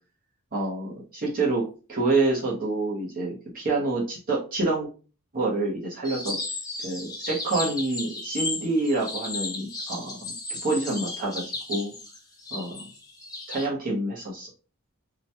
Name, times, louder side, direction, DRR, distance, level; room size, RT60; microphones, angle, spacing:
voice 1, 0.5-1.6 1.9-4.9 5.3-6.4 6.8-10.2 10.6-11.4 11.7-11.9 12.5-12.9 13.5-14.5, right 2 dB, 40° right, -4 dB, 0.9 m, -27 dB
sound 1, 6.0-13.7, left 2 dB, 15° left, 0.7 m, -34 dB
2.9 x 2.2 x 2.8 m, 0.35 s
head